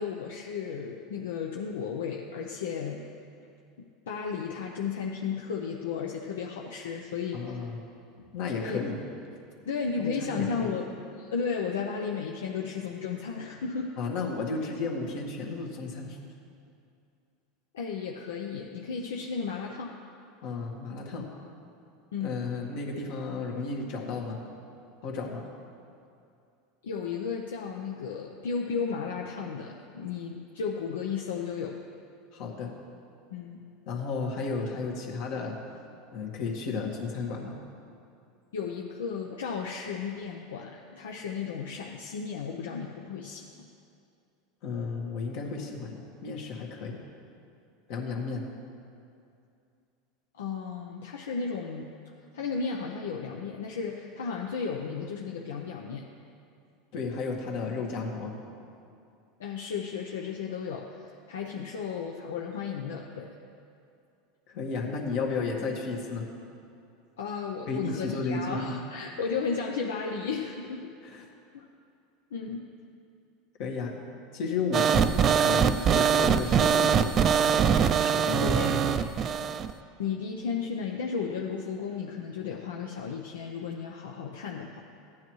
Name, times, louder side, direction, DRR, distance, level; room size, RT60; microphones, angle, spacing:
voice 1, 0.0-3.0 4.1-7.6 8.6-8.8 9.7-10.9 11.2-13.9 17.7-20.0 22.1-22.4 26.8-31.8 33.3-33.6 38.5-43.5 50.3-51.9 52.3-56.1 59.4-63.3 67.2-70.9 71.5-71.7 72.3-72.7 78.4-79.0 80.0-84.7, left 6 dB, 85° left, 0 dB, 0.7 m, -34 dB
voice 2, 7.3-7.8 8.2-9.0 10.0-10.8 14.0-16.2 20.4-21.3 22.2-24.4 25.0-25.5 32.3-32.7 33.9-35.6 36.1-37.6 44.6-47.0 47.9-48.5 56.9-58.3 64.5-66.3 67.7-68.7 71.0-71.3 73.6-74.0 74.3-77.7 78.0-79.1, left 4 dB, 65° left, 0 dB, 1.8 m, -33 dB
sound 1, 74.7-79.7, right 7 dB, 40° right, 0.4 m, -23 dB
15.5 x 9.6 x 3.2 m, 2.5 s
supercardioid pair, 105°, 0 cm